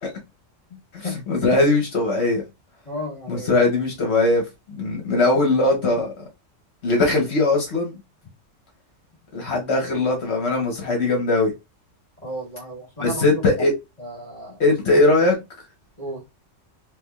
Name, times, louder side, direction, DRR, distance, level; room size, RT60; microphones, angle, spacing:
voice 1, 0.9-2.4 3.3-4.4 4.7-6.1 6.8-8.0 9.3-11.5 13.0-13.7 14.6-15.4, left 2 dB, 60° left, 1.1 m, -20 dB
voice 2, 2.8-3.7 5.1-5.2 12.2-13.4 14.0-14.6 16.0-16.2, equal, 35° left, 1.5 m, -33 dB
3.4 x 3.0 x 2.3 m
omnidirectional pair, 1.3 m